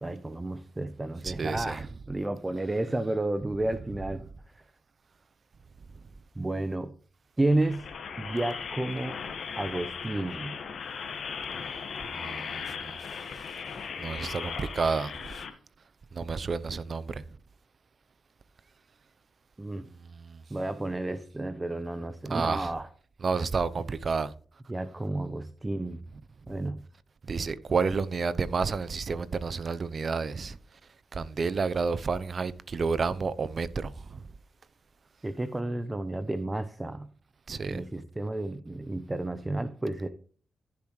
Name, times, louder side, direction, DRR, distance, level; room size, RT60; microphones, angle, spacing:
voice 1, 0.0-4.2 4.5-4.6 6.4-6.9 7.4-7.8 8.2-9.2 9.6-10.5 19.6-19.8 20.5-22.9 24.7-26.0 26.5-26.8 35.2-37.1 37.7-40.1, right 2 dB, 20° right, 0.9 m, -31 dB
voice 2, 1.2-1.9 4.1-4.2 12.2-13.0 14.0-15.3 16.1-17.2 20.1-20.4 22.3-22.7 23.2-24.3 26.5-26.6 27.3-30.6 31.1-34.2 37.5-37.8, right 4 dB, 55° right, 0.7 m, -30 dB
sound 1, 7.5-15.5, left 6 dB, 70° left, 1.6 m, -38 dB
14.5 x 7.2 x 3.2 m
cardioid pair, 60°, 0 cm